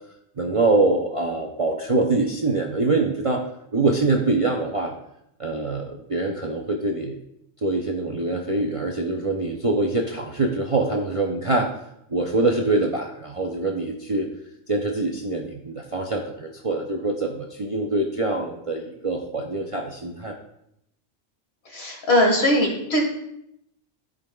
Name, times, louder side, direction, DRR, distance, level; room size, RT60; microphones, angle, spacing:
voice 1, 0.4-3.4 3.7-4.9 5.4-7.2 7.6-11.7 12.1-14.3 14.7-20.3, right 2 dB, 35° right, 0 dB, 0.5 m, -24 dB
voice 2, 21.7-23.0, left 1 dB, 55° left, 1 dB, 1.8 m, -20 dB
13.0 x 5.2 x 2.3 m, 0.78 s
omnidirectional pair, 1.3 m